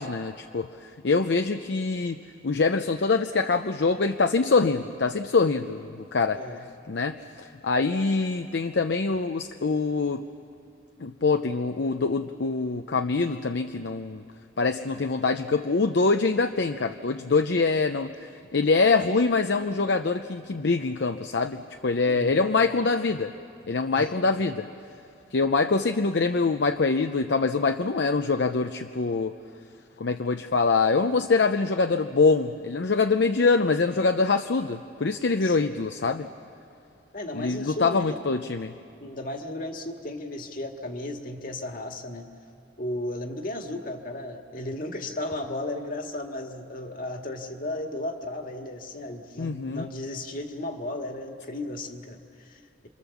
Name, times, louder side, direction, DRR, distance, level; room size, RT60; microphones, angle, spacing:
voice 1, 0.0-2.2 2.4-6.4 6.9-10.2 11.0-14.2 14.6-23.3 23.7-24.7 25.3-29.3 30.0-36.3 37.3-38.7 49.4-49.9, left 4 dB, 65° left, 7 dB, 0.6 m, -24 dB
voice 2, 6.3-6.7 22.1-22.4 24.0-24.1 35.4-35.7 37.1-38.1 39.0-42.3 42.8-52.9, left 1 dB, 45° left, 3 dB, 1.9 m, -35 dB
28.0 x 25.5 x 7.2 m, 2.5 s
head